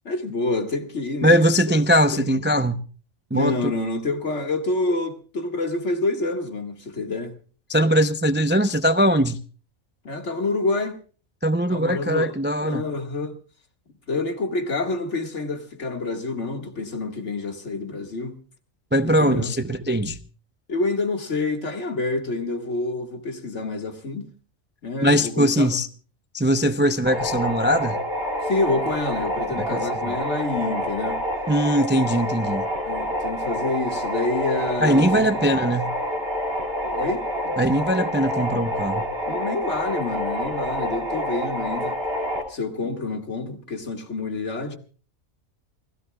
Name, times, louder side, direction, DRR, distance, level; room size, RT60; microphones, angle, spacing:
voice 1, 0.1-1.8 2.1-2.4 3.3-7.3 10.0-11.0 11.7-12.4 12.6-13.3 14.1-18.4 19.0-19.5 20.7-24.3 24.8-25.7 26.8-26.9 28.4-31.2 32.9-35.5 36.8-37.6 39.3-42.0 42.5-44.8, left 3 dB, 65° left, 2.2 m, -28 dB
voice 2, 1.2-2.8 3.3-3.7 7.7-9.4 11.4-12.8 18.9-20.2 25.0-25.9 26.3-28.0 29.6-30.0 31.5-32.7 34.8-35.9 37.6-39.1, equal, 20° right, 0.3 m, -21 dB
sound 1, 27.1-42.4, equal, 50° right, 2.8 m, -27 dB
28.5 x 16.5 x 2.3 m
omnidirectional pair, 1.3 m